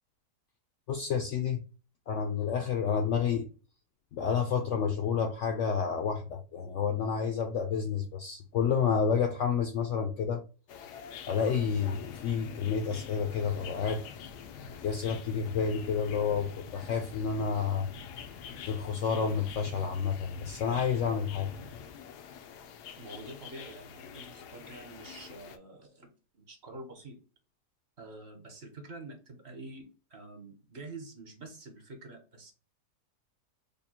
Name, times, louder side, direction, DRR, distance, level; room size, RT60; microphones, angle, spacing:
voice 1, 0.9-1.6 2.1-3.5 4.1-10.4 11.3-14.0 14.8-17.9 18.7-21.5, left 6 dB, 70° left, 5 dB, 0.7 m, -30 dB
sound 1, 10.7-25.6, left 7 dB, 90° left, 1.2 m, -45 dB
voice 2, 23.0-26.1 26.4-27.2 28.0-32.5, right 2 dB, 45° right, 4 dB, 1.1 m, -47 dB
3.5 x 2.2 x 4.2 m, 0.35 s
omnidirectional pair, 1.7 m